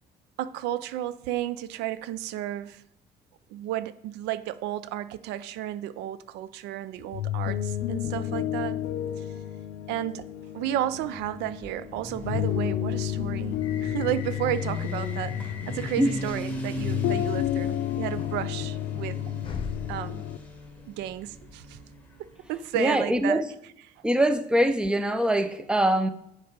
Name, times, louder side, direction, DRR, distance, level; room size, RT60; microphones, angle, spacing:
voice 1, 0.4-2.8 3.5-8.8 9.2-9.3 9.9-10.2 10.5-19.2 19.9-20.2 20.9-21.8 22.5-23.4, right 12 dB, 90° right, 15 dB, 0.4 m, -32 dB
sound 1, 7.0-20.4, left 12 dB, 85° left, 0.4 m, -31 dB
Motorcycle, 10.9-22.6, left 1 dB, 10° left, 1.8 m, -39 dB
Train doors close, 13.6-22.0, left 5 dB, 30° left, 1.0 m, -44 dB
voice 2, 22.7-23.4 24.0-26.1, right 1 dB, 5° right, 10 dB, 0.6 m, -23 dB
7.0 x 4.8 x 5.0 m, 0.77 s
cardioid pair, 110°, 17 cm